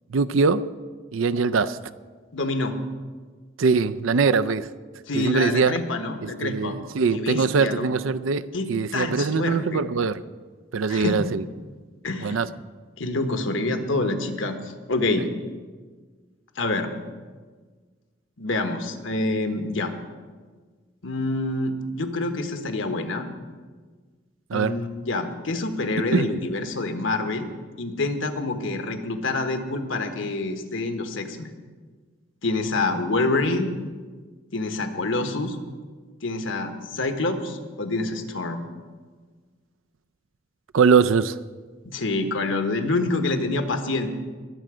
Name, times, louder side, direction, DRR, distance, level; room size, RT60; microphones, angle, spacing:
voice 1, 0.1-0.7 1.1-1.8 3.6-4.7 5.1-5.8 6.2-10.2 10.7-11.4 12.2-12.5 15.2-15.3 24.5-24.8 26.0-26.3 40.7-41.4, right 5 dB, 90° right, 13 dB, 0.5 m, -22 dB
voice 2, 2.3-2.8 5.1-6.7 7.1-7.9 8.5-8.7 8.9-9.8 10.9-11.2 12.0-12.4 13.0-14.6 14.9-15.3 16.6-16.9 18.4-19.9 21.0-23.2 24.5-27.5 27.8-31.5 32.4-33.7 34.5-35.6 36.2-38.6 41.8-44.1, left 2 dB, 80° left, 6 dB, 1.3 m, -26 dB
21.5 x 7.8 x 5.0 m, 1.5 s
head